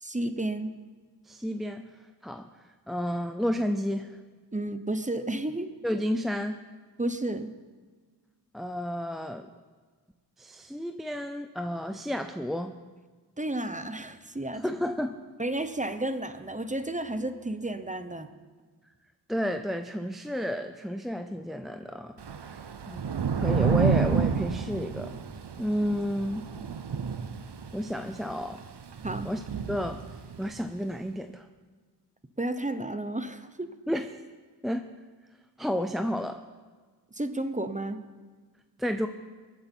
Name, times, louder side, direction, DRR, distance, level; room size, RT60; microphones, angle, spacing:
voice 1, 0.0-0.7 4.5-5.7 7.0-7.5 13.4-14.6 15.4-18.3 22.9-23.0 29.0-29.3 32.4-33.7 37.1-38.0, right 1 dB, 20° right, 10 dB, 0.9 m, -32 dB
voice 2, 1.3-1.9 2.2-2.5 2.9-4.1 5.8-6.6 8.5-9.5 10.4-12.7 14.5-15.1 19.3-22.2 22.5-22.6 23.4-25.2 25.6-26.5 27.7-28.6 29.2-29.4 29.7-30.0 30.4-31.5 33.9-34.1 34.6-34.9 35.6-36.4 38.8-39.1, equal, ahead, 7 dB, 0.6 m, -31 dB
Thunder / Rain, 22.2-30.6, right 6 dB, 75° right, 0.8 m, -30 dB
22.0 x 9.3 x 4.6 m, 1.5 s
wide cardioid pair, 50°, 41 cm